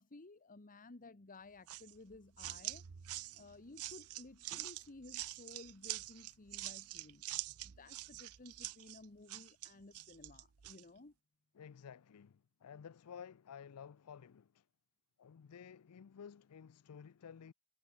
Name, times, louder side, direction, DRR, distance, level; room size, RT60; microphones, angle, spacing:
voice 1, 0.0-2.8 3.3-7.2 7.6-11.1, left 2 dB, 40° left, 1.2 m, -56 dB
sound 1, 1.7-10.8, right 16 dB, 75° right, 0.6 m, -46 dB
voice 2, 11.5-14.7 15.2-17.5, left 7 dB, 85° left, 0.5 m, -53 dB
head